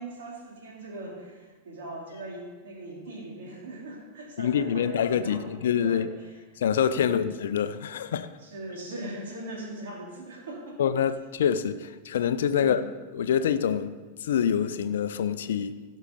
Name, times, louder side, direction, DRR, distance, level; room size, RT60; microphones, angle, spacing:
voice 1, 0.0-6.3 6.9-7.3 8.4-10.8 12.5-12.9, right 1 dB, 60° right, 2.8 m, -40 dB
voice 2, 4.4-6.1 6.6-8.3 10.8-12.8 13.1-13.9 14.2-15.7, left 8 dB, 60° left, 0.5 m, -26 dB
16.0 x 5.5 x 5.2 m
figure-of-eight pair, 90°, 0 cm